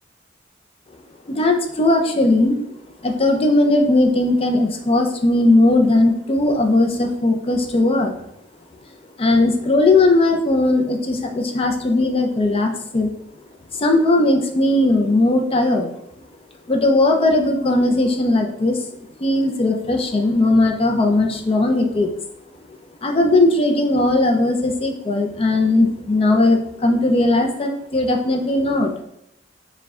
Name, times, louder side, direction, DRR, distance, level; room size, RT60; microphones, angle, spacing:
voice 1, 1.3-2.6 3.0-8.1 9.2-13.1 13.7-15.9 16.7-18.8 19.2-22.1 23.0-29.0, left 2 dB, 30° left, 4 dB, 0.5 m, -18 dB
4.7 x 2.2 x 3.6 m, 0.75 s
head